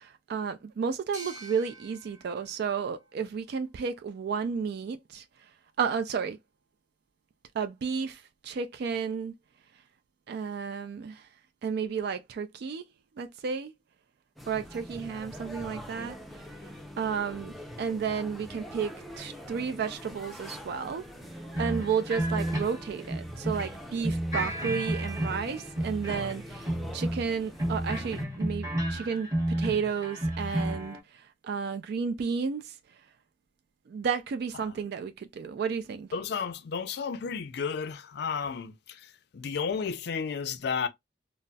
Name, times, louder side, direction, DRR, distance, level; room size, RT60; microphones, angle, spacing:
voice 1, 0.0-5.5 5.8-6.4 7.5-9.3 10.3-11.3 11.6-12.8 13.2-13.7 14.5-16.7 17.0-18.9 19.2-21.0 21.6-32.8 33.9-36.1, right 6 dB, 60° right, 0.3 m, -32 dB
sound 1, 1.1-4.5, right 3 dB, 40° right, 1.0 m, -50 dB
sound 2, 14.4-28.2, equal, ahead, 0.5 m, -44 dB
sound 3, 21.5-23.7 24.0-26.4 26.6-31.0, right 1 dB, 20° right, 1.0 m, -31 dB
voice 2, 36.1-40.9, left 6 dB, 65° left, 0.4 m, -33 dB
3.9 x 2.0 x 2.2 m
head